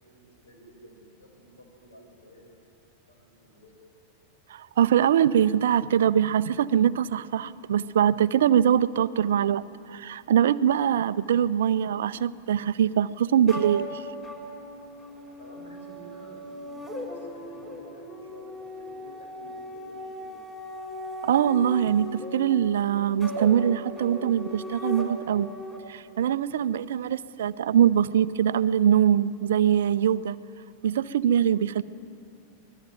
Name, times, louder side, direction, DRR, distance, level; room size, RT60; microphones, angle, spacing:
voice 1, 0.0-2.8 3.1-3.8 15.4-20.5, equal, 70° left, 1 dB, 7.4 m, -51 dB
voice 2, 4.5-9.6 9.9-14.0 21.2-25.5 25.9-30.4 30.8-31.8, right 9 dB, 60° right, 16 dB, 0.5 m, -23 dB
sound 1, 13.5-25.8, equal, 15° left, 5.2 m, -38 dB
24.5 x 19.5 x 9.2 m, 2.6 s
figure-of-eight pair, 90°, 0 cm